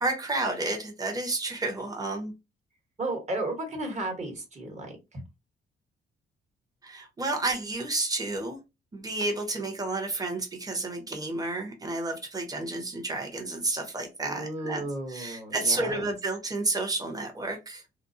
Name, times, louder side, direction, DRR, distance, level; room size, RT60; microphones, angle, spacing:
voice 1, 0.0-2.3 6.8-8.6 8.9-14.8 15.1-18.1, right 2 dB, 20° right, 0.9 m, -31 dB
voice 2, 3.0-4.9 14.2-16.1, right 2 dB, 35° right, 1.3 m, -33 dB
2.5 x 2.0 x 2.7 m
cardioid pair, 90°, 20 cm